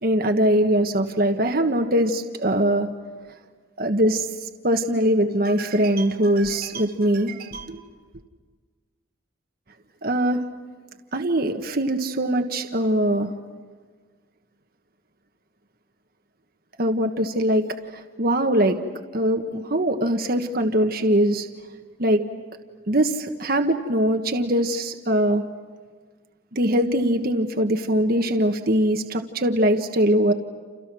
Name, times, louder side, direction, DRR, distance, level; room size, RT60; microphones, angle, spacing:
voice 1, 0.0-2.9 3.8-4.3 4.6-7.8 10.0-10.4 11.1-13.3 16.8-17.7 17.9-18.8 19.1-21.5 22.0-22.2 22.9-25.4 26.5-30.3, right 1 dB, 50° right, 5 dB, 1.4 m, -22 dB
29.5 x 29.0 x 6.2 m, 1.5 s
head